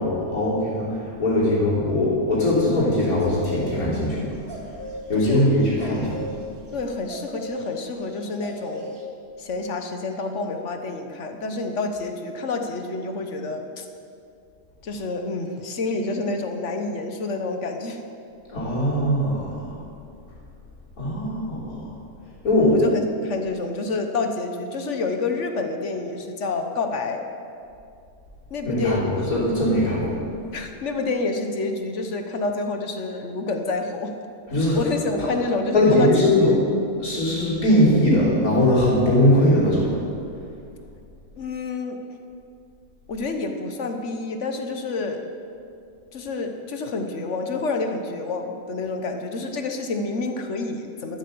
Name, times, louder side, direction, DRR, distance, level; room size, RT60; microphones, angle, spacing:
voice 1, 0.0-4.6 5.1-6.2 18.5-19.8 21.0-21.9 22.4-22.8 28.6-30.2 34.5-34.8 35.2-35.3 35.7-36.5 37.0-40.0, left 1 dB, 75° left, -7 dB, 3.9 m, -20 dB
sound 1, 3.2-3.8 4.1-4.2 4.4-9.0, equal, 15° right, 1.8 m, -37 dB
voice 2, 5.1-5.6 6.7-9.0 9.4-13.9 14.8-18.0 22.7-27.3 28.5-29.4 30.5-34.1 34.7-36.6 41.3-42.0 43.1-45.2 46.1-51.2, left 3 dB, 55° left, 5 dB, 1.3 m, -28 dB
13.0 x 8.2 x 6.9 m, 2.5 s
omnidirectional pair, 1.5 m